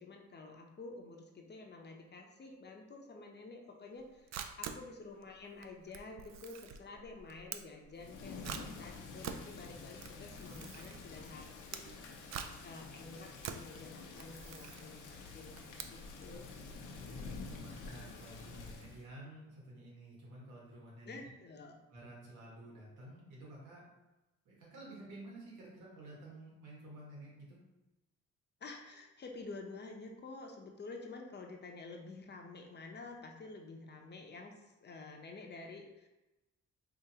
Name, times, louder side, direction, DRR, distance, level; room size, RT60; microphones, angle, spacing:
voice 1, 0.0-12.1 12.6-16.5 21.0-21.8 28.6-36.1, left 3 dB, 35° left, 2 dB, 0.7 m, -50 dB
Camera, 3.9-16.4, right 7 dB, 65° right, 0.4 m, -47 dB
Thunder / Rain, 7.9-19.0, left 4 dB, 80° left, 0.7 m, -49 dB
voice 2, 16.3-21.3 21.9-23.8 24.4-27.6, right 1 dB, 85° right, -4 dB, 1.5 m, -52 dB
4.8 x 2.5 x 2.8 m, 1.0 s
cardioid pair, 90°, 30 cm